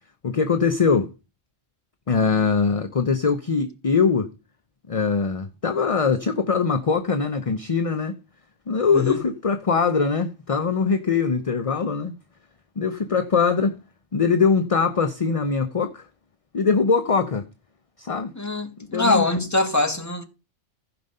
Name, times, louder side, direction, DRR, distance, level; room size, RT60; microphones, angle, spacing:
voice 1, 0.2-1.1 2.1-4.3 4.9-8.2 8.7-12.2 12.8-13.8 14.1-16.1 16.5-17.5 18.0-18.3 18.8-19.2, left 5 dB, 35° left, 0.7 m, -22 dB
voice 2, 8.9-9.2 18.4-20.2, left 2 dB, 15° left, 1.2 m, -23 dB
15.0 x 5.2 x 5.4 m
omnidirectional pair, 1.3 m